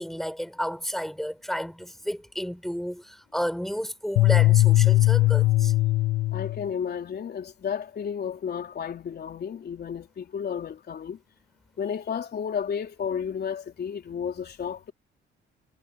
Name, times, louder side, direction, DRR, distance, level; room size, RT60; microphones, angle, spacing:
voice 1, 0.0-5.7, equal, ahead, 4.8 m, -32 dB
sound 1, 4.2-6.7, left 18 dB, 85° left, 0.8 m, -20 dB
voice 2, 6.3-11.2 11.8-14.9, left 7 dB, 55° left, 3.8 m, -32 dB
cardioid pair, 90°, 20 cm